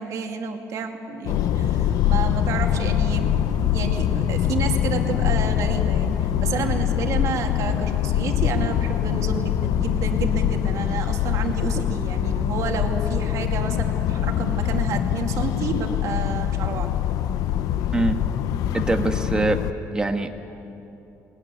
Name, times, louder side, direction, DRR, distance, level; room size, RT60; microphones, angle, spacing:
voice 1, 0.0-16.9, right 5 dB, 65° right, 3 dB, 2.5 m, -30 dB
sound 1, 1.3-19.7, left 11 dB, 85° left, 0.7 m, -23 dB
voice 2, 18.7-19.6 19.9-20.3, right 2 dB, 15° right, 5 dB, 1.5 m, -23 dB
20.5 x 20.0 x 9.8 m, 2.9 s
cardioid pair, 145°, 6 cm